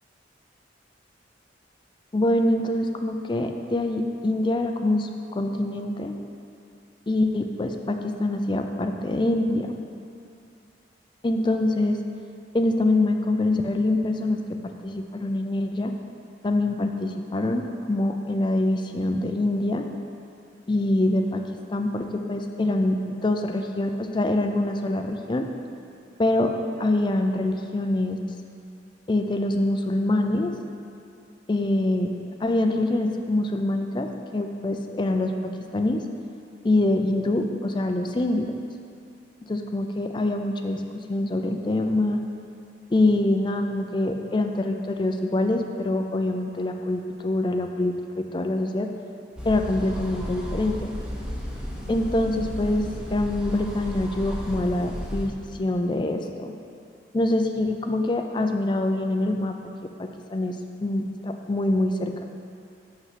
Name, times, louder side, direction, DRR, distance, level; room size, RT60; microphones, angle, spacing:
voice 1, 2.1-6.1 7.1-9.8 11.2-12.0 12.5-14.4 14.8-15.9 16.4-19.9 20.7-21.4 21.7-25.5 26.2-26.5 26.8-28.2 29.1-30.5 31.5-32.1 32.4-36.0 36.6-38.6 39.5-42.2 42.9-48.9 49.4-50.9 51.9-56.5 57.1-59.5 60.0-62.2, left 1 dB, 25° left, 4 dB, 0.4 m, -25 dB
sound 1, 49.4-55.2, equal, 5° right, 0.8 m, -33 dB
5.7 x 5.7 x 5.8 m, 2.5 s
head